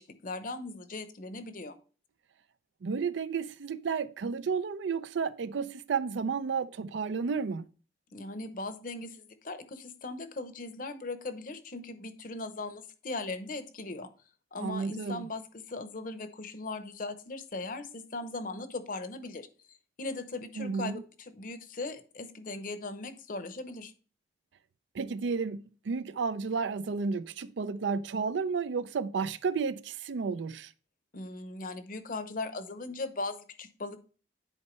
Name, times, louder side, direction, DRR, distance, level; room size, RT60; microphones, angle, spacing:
voice 1, 0.0-1.8 8.1-14.1 14.5-19.5 20.0-23.9 31.1-34.0, left 3 dB, 45° left, 0.7 m, -39 dB
voice 2, 2.8-7.7 14.6-15.3 20.6-21.0 24.9-30.7, right 5 dB, 80° right, 0.4 m, -32 dB
9.9 x 4.5 x 3.1 m
head